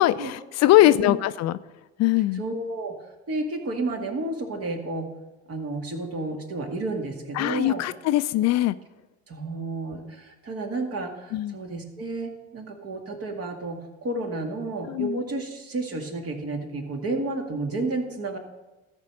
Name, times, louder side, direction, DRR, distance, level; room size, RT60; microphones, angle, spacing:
voice 1, 0.0-1.6 2.0-2.4 7.3-8.8 11.3-11.6 14.9-15.2, left 15 dB, 55° left, 15 dB, 0.5 m, -21 dB
voice 2, 0.8-1.1 2.3-2.9 3.3-5.1 5.5-7.8 9.3-18.4, right 2 dB, 50° right, 3 dB, 2.1 m, -31 dB
13.5 x 5.2 x 6.3 m, 1.1 s
hypercardioid pair, 65°, 32 cm